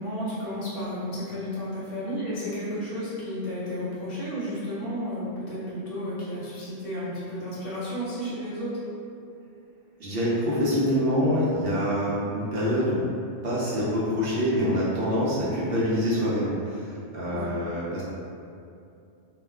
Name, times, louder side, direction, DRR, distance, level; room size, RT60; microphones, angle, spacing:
voice 1, 0.0-8.9 17.3-17.5, equal, 55° left, -8 dB, 0.9 m, -32 dB
voice 2, 10.0-13.0 13.4-18.0, equal, 60° right, -8 dB, 0.7 m, -25 dB
2.3 x 2.1 x 3.3 m, 2.6 s
omnidirectional pair, 1.2 m